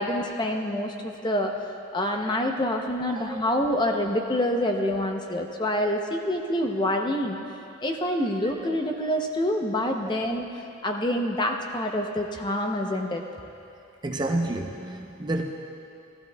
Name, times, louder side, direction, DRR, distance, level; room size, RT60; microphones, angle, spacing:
voice 1, 0.0-1.5 1.9-7.4 7.8-10.5 10.8-13.2, left 1 dB, 20° left, 3 dB, 0.6 m, -26 dB
voice 2, 3.1-3.4 14.0-15.4, right 2 dB, 20° right, 2 dB, 0.5 m, -29 dB
16.5 x 13.0 x 2.2 m, 2.6 s
head